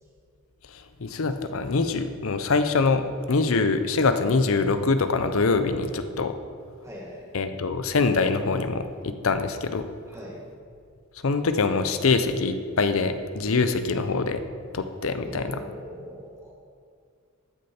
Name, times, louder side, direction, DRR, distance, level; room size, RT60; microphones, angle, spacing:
voice 1, 0.7-6.3 7.3-9.8 11.2-14.4 14.7-15.6, left 4 dB, 70° left, 9 dB, 0.6 m, -24 dB
voice 2, 6.8-7.4 10.1-10.5 15.2-16.5, equal, 15° right, -3 dB, 1.4 m, -41 dB
13.5 x 6.5 x 4.3 m, 2.2 s
head